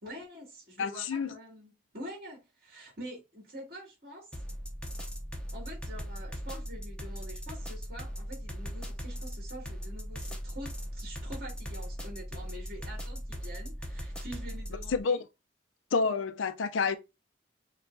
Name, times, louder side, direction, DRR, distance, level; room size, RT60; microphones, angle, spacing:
voice 1, 0.0-4.3 5.5-15.2, equal, 50° right, 2.4 m, -46 dB
voice 2, 0.8-1.3 14.9-15.2 15.9-17.0, left 5 dB, 80° left, 0.5 m, -28 dB
sound 1, 4.3-15.0, equal, 5° left, 0.6 m, -39 dB
6.6 x 2.3 x 2.6 m
head